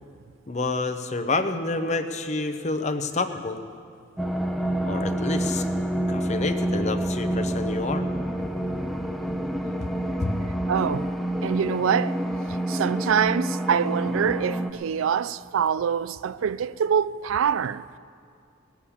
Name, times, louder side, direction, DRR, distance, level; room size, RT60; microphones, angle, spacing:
voice 1, 0.5-3.6 4.8-5.6 6.1-8.1 10.2-10.4, left 3 dB, 35° left, 0.7 m, -28 dB
sound 1, 4.2-14.7, right 1 dB, ahead, 0.5 m, -28 dB
voice 2, 10.7-11.1 11.4-12.1 12.7-17.8, right 7 dB, 75° right, 0.3 m, -25 dB
18.5 x 7.2 x 8.5 m
head